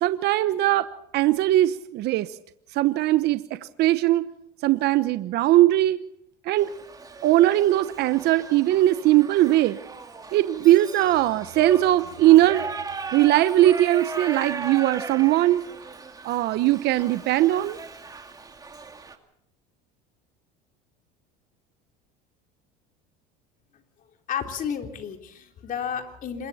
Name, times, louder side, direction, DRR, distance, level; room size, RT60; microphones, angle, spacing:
voice 1, 0.0-2.3 2.7-4.3 4.6-6.0 6.5-6.7 7.2-9.8 10.3-12.7 13.1-15.6 16.2-17.8, right 15 dB, 55° right, 12 dB, 1.0 m, -20 dB
Shout / Livestock farm animals working animals, 6.6-19.2, right 4 dB, 20° right, 2.5 m, -38 dB
voice 2, 24.3-26.5, left 8 dB, 45° left, 4 dB, 3.7 m, -32 dB
27.0 x 23.0 x 4.3 m, 0.76 s
supercardioid pair, 105°, 20 cm